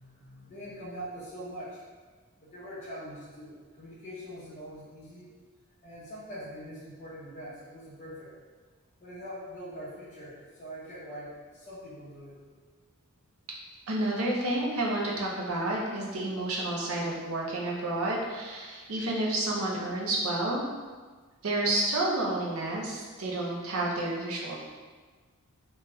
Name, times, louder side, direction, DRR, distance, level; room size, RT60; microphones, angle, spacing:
voice 1, 0.0-1.8 2.4-5.3 5.8-8.3 9.0-12.4, equal, 35° left, -8 dB, 0.8 m, -43 dB
voice 2, 13.9-20.6 21.4-24.6, right 2 dB, 70° right, -3 dB, 0.6 m, -30 dB
3.0 x 2.3 x 3.0 m, 1.4 s
head